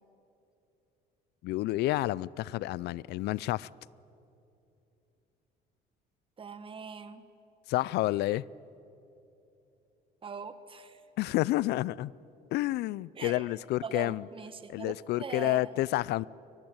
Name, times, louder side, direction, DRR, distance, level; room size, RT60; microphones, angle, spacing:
voice 1, 1.4-3.7 7.7-8.4 11.2-12.1 12.5-14.2 14.7-16.2, left 17 dB, 75° left, 23 dB, 0.4 m, -29 dB
voice 2, 6.4-7.2 10.2-11.0 13.1-13.5 13.8-15.7, right 5 dB, 30° right, 11 dB, 1.5 m, -41 dB
23.0 x 18.0 x 9.0 m, 2.8 s
cardioid pair, 110°, 17 cm